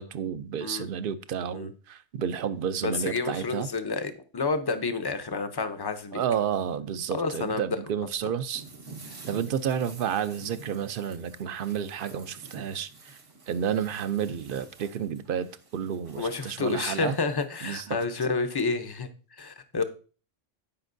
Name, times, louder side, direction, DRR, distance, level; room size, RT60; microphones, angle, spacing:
voice 1, 0.0-3.7 6.1-8.6 9.3-13.2 13.5-17.2 17.6-18.0, right 8 dB, 55° right, 0.7 m, -31 dB
voice 2, 2.8-6.2 7.1-7.8 9.1-9.2 16.2-19.8, left 4 dB, 25° left, 0.5 m, -30 dB
sound 1, 8.6-17.5, right 3 dB, 75° right, 1.8 m, -49 dB
15.5 x 5.2 x 2.6 m
omnidirectional pair, 1.3 m